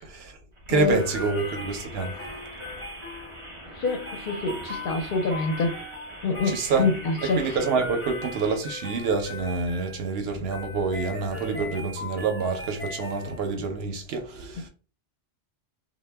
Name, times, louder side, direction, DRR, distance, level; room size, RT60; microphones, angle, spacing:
voice 1, 0.0-0.4 0.7-2.1 6.5-6.9 7.2-14.7, right 4 dB, 70° right, 0.8 m, -27 dB
sound 1, 0.6-8.5, right 1 dB, 35° right, 0.7 m, -43 dB
voice 2, 0.7-1.4 3.7-5.8 6.2-7.4, left 3 dB, 60° left, 0.6 m, -27 dB
sound 2, 0.9-13.7, left 2 dB, 15° left, 0.5 m, -39 dB
2.1 x 2.1 x 3.2 m
omnidirectional pair, 1.1 m